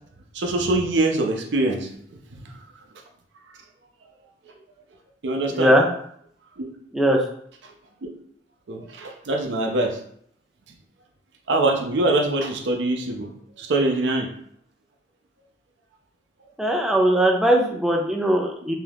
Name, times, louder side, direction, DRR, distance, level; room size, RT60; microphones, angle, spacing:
voice 1, 0.3-1.9 2.3-2.5 5.2-5.7 6.6-6.7 8.7-10.0 11.5-13.3 13.6-14.3, right 2 dB, 75° right, 3 dB, 0.5 m, -23 dB
voice 2, 5.5-5.9 6.9-7.2 16.6-18.8, right 1 dB, 5° right, -1 dB, 0.4 m, -19 dB
2.7 x 2.3 x 3.4 m, 0.65 s
head